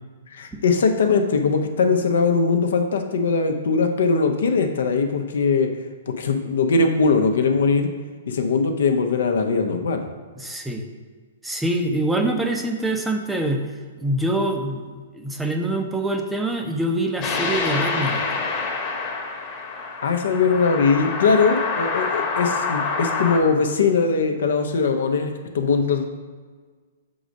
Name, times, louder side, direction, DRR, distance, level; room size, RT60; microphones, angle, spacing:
voice 1, 0.3-5.7 6.1-7.9 8.3-10.0 20.0-26.0, left 4 dB, 70° left, 5 dB, 0.7 m, -20 dB
voice 2, 10.4-10.8 11.4-13.6 14.0-14.8 15.1-18.2, right 1 dB, 5° right, 3 dB, 0.6 m, -24 dB
sound 1, 17.2-23.4, left 4 dB, 30° left, 1.1 m, -26 dB
5.1 x 3.9 x 5.2 m, 1.5 s
hypercardioid pair, 130°, 0 cm